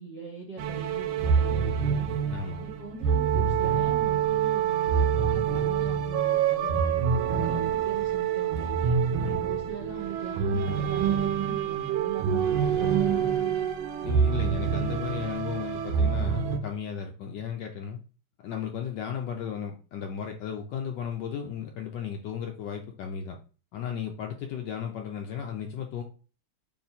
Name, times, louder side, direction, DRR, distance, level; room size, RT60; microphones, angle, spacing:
voice 1, 0.0-2.1 2.6-6.8 7.2-9.0 9.4-13.7, right 4 dB, 40° right, -3 dB, 0.8 m, -41 dB
sound 1, 0.6-16.6, right 7 dB, 80° right, 1.4 m, -26 dB
voice 2, 2.3-2.7 9.2-9.4 14.0-18.0 18.4-23.4 23.7-26.0, left 8 dB, 75° left, 3 dB, 1.0 m, -35 dB
3.5 x 2.9 x 4.1 m, 0.37 s
omnidirectional pair, 2.3 m